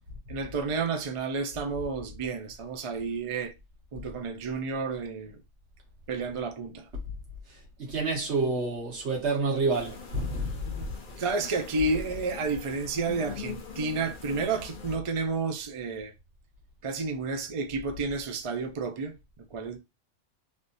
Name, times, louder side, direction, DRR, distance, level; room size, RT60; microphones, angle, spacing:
voice 1, 0.3-3.5 3.9-5.4 6.1-6.9 11.2-16.1 16.8-19.8, right 4 dB, 50° right, 0.4 m, -31 dB
voice 2, 7.5-10.7, right 3 dB, 65° right, 1.5 m, -29 dB
sound 1, 9.7-15.0, left 6 dB, 50° left, 0.8 m, -42 dB
3.4 x 2.7 x 2.6 m
omnidirectional pair, 1.2 m